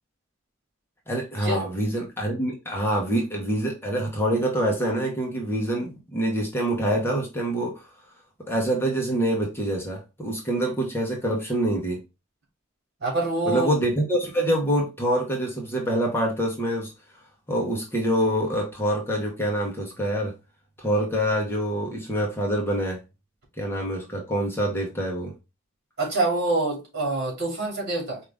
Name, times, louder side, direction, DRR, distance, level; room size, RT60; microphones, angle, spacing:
voice 1, 1.1-7.9 8.5-12.0 13.5-16.9 17.5-20.3 20.8-23.0 23.6-25.3, right 1 dB, 10° left, 1.1 m, -26 dB
voice 2, 13.0-13.7 26.0-28.2, right 2 dB, 55° right, 2.7 m, -25 dB
5.0 x 2.8 x 3.5 m
head